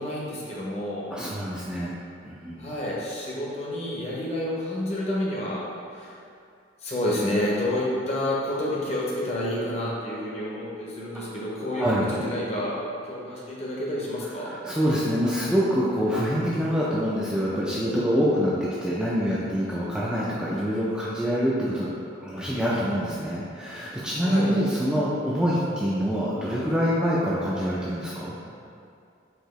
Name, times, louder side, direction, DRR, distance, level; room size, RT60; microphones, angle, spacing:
voice 1, 0.0-1.1 2.6-5.6 5.9-6.2 6.8-14.5 24.2-24.5, left 1 dB, 35° left, -5 dB, 0.7 m, -29 dB
voice 2, 1.1-1.9 2.2-2.6 11.8-12.1 14.6-21.9 22.2-28.4, equal, 5° right, -8 dB, 0.3 m, -25 dB
4.6 x 2.7 x 3.0 m, 2.5 s
head